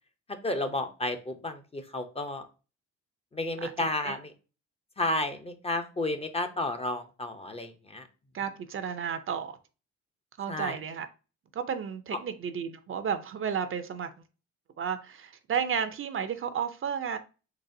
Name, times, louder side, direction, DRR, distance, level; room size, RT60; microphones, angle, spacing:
voice 1, 0.4-2.5 3.3-4.3 5.0-8.1 10.5-10.8, left 2 dB, 20° left, 0.6 m, -32 dB
voice 2, 3.6-4.2 8.3-9.5 10.4-11.1 11.5-14.1 14.8-17.2, right 7 dB, 45° right, 0.5 m, -32 dB
4.0 x 3.7 x 2.6 m
cardioid pair, 90°, 30 cm